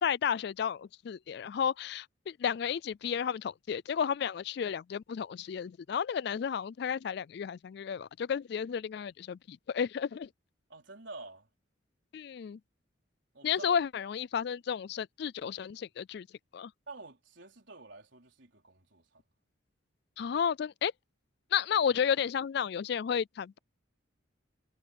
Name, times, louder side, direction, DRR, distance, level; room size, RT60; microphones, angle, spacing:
voice 1, 0.0-10.3 12.1-12.6 13.4-16.3 16.5-16.7 20.2-20.9 21.5-23.6, left 7 dB, 55° left, 0.3 m, -32 dB
voice 2, 10.7-11.5 13.3-13.8 16.9-19.2, right 3 dB, 65° right, 4.5 m, -49 dB
head